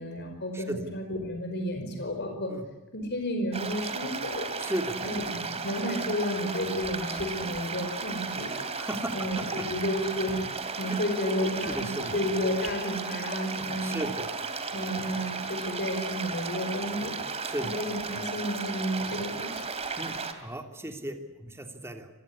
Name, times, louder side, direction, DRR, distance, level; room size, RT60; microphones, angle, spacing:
voice 1, 0.0-2.5 2.9-4.5 5.0-8.5 9.1-10.5 10.8-14.1 14.7-17.2 17.6-19.7, equal, 55° left, 4 dB, 5.1 m, -32 dB
voice 2, 0.5-0.9 2.5-2.7 4.6-5.0 8.8-9.7 10.9-11.0 11.6-12.1 13.8-14.3 17.4-17.7 20.0-22.1, right 1 dB, 10° right, 5 dB, 2.9 m, -35 dB
sound 1, 3.5-20.3, right 4 dB, 30° right, 2.7 m, -35 dB
27.0 x 21.0 x 9.8 m, 1.0 s
head